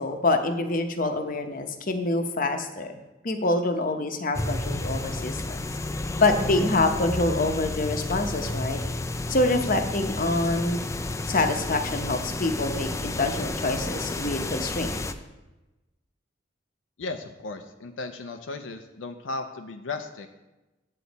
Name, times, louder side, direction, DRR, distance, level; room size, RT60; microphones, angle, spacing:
voice 1, 0.0-2.9 3.2-5.6 6.2-8.8 9.3-10.9 11.3-15.0, left 2 dB, 45° left, 6 dB, 0.8 m, -26 dB
sound 1, 4.3-15.1, left 2 dB, 15° left, 0.4 m, -31 dB
voice 2, 17.0-20.3, left 3 dB, 80° left, 6 dB, 0.6 m, -35 dB
8.2 x 7.8 x 4.1 m, 1.1 s
head